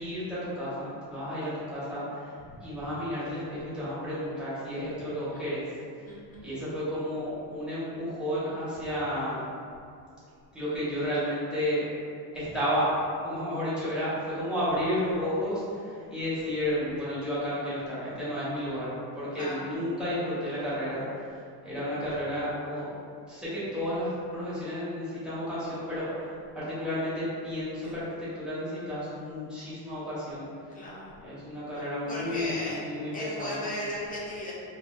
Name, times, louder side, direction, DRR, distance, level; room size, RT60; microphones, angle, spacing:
voice 1, 0.0-2.3 2.6-5.6 6.4-9.4 10.5-11.8 12.3-12.9 13.2-22.9 23.3-30.5 31.2-33.1 33.4-33.6, equal, ahead, -12 dB, 0.8 m, -32 dB
voice 2, 6.0-6.4 19.3-19.7 27.8-27.9 30.7-31.2 32.1-32.8 33.1-34.5, left 1 dB, 20° left, -6 dB, 0.4 m, -36 dB
3.2 x 2.3 x 2.2 m, 2.4 s
cardioid pair, 155°, 43 cm